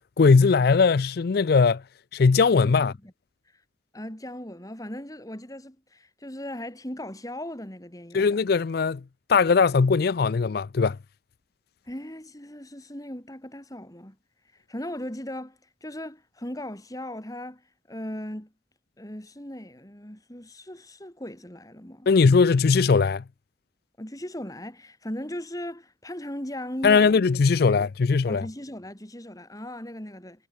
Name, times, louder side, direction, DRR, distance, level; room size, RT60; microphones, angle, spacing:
voice 1, 0.2-1.8 2.1-2.9 8.1-9.0 9.3-11.0 22.1-23.2 26.8-28.5, left 4 dB, 55° left, 0.4 m, -20 dB
voice 2, 3.9-8.3 11.9-14.2 14.7-18.5 19.0-22.1 24.0-27.2 27.6-27.8 28.3-30.5, left 1 dB, 20° left, 2.9 m, -38 dB
head